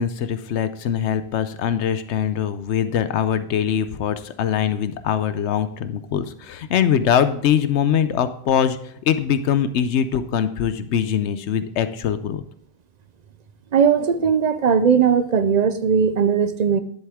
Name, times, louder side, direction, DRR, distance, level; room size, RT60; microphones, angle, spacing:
voice 1, 0.0-12.4, left 8 dB, 85° left, 12 dB, 0.9 m, -22 dB
voice 2, 13.7-16.8, right 7 dB, 50° right, 12 dB, 0.5 m, -18 dB
10.5 x 7.8 x 3.6 m, 0.65 s
omnidirectional pair, 1.1 m